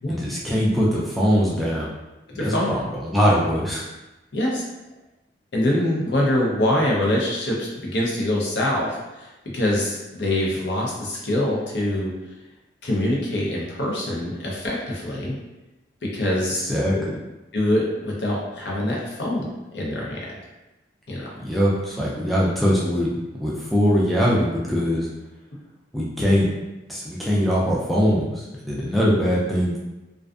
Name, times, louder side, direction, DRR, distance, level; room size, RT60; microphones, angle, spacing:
voice 1, 0.1-1.9 2.3-3.8 16.6-17.0 21.4-23.1 23.4-25.1 25.9-26.5 26.9-29.8, equal, ahead, -6 dB, 0.3 m, -22 dB
voice 2, 2.4-2.7 4.3-4.6 5.5-8.9 9.2-9.3 9.5-12.1 12.8-15.4 16.1-16.6 16.9-17.0 17.5-19.4 19.7-20.2 21.1-21.3, left 1 dB, 75° left, -3 dB, 0.6 m, -24 dB
2.4 x 2.3 x 2.3 m, 1.0 s
head